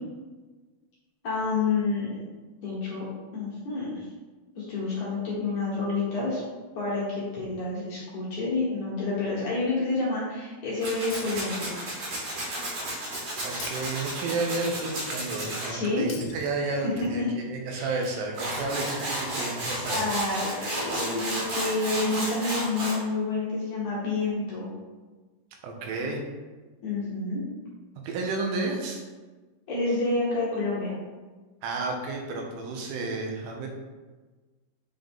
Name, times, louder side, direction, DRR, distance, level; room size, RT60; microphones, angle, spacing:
voice 1, 1.2-2.2 2.6-3.1 3.3-4.0 4.6-6.4 6.8-11.8 15.7-16.1 16.8-17.3 17.7-18.0 19.9-24.7 26.8-27.4 29.7-30.9, left 3 dB, 60° left, -7 dB, 2.2 m, -29 dB
Tools, 10.8-15.7 18.0-18.1 18.3-23.0, right 1 dB, 50° right, 2.1 m, -32 dB
Shatter, 11.1-12.1 13.6-14.6 16.1-17.1, left 7 dB, 85° left, 2.7 m, -46 dB
voice 2, 13.4-20.2 25.6-26.2 28.0-29.0 31.6-33.7, right 3 dB, 85° right, 1 dB, 3.0 m, -31 dB
7.4 x 3.7 x 3.6 m, 1.3 s
omnidirectional pair, 4.7 m